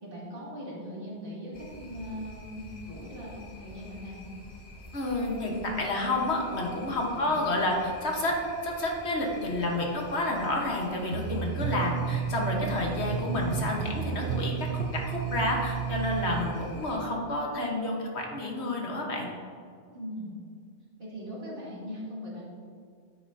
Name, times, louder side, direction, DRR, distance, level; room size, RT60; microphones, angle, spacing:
voice 1, 0.0-4.4 7.1-7.4 19.9-20.4 21.0-22.4, equal, 55° right, -7 dB, 2.7 m, -40 dB
sound 1, 1.5-16.9, left 1 dB, 50° left, 1.6 m, -49 dB
voice 2, 4.9-19.3, left 1 dB, 80° left, 0 dB, 1.6 m, -30 dB
sound 2, 11.1-16.4, right 7 dB, 70° right, 1.0 m, -32 dB
9.9 x 8.6 x 2.8 m, 2.2 s
omnidirectional pair, 1.1 m